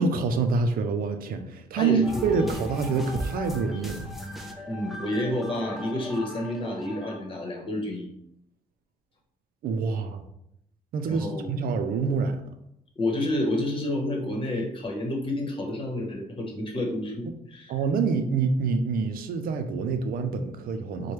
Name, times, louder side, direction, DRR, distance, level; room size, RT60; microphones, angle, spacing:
voice 1, 0.0-4.1 9.6-10.2 10.9-12.4 17.7-21.1, right 4 dB, 75° right, 7 dB, 0.5 m, -26 dB
voice 2, 1.8-2.5 4.7-8.1 11.1-11.5 13.0-17.7, left 1 dB, 35° left, 0 dB, 1.1 m, -29 dB
sound 1, 2.0-7.2, left 1 dB, ahead, 0.5 m, -37 dB
4.4 x 2.2 x 3.2 m, 0.77 s
cardioid pair, 95°, 15 cm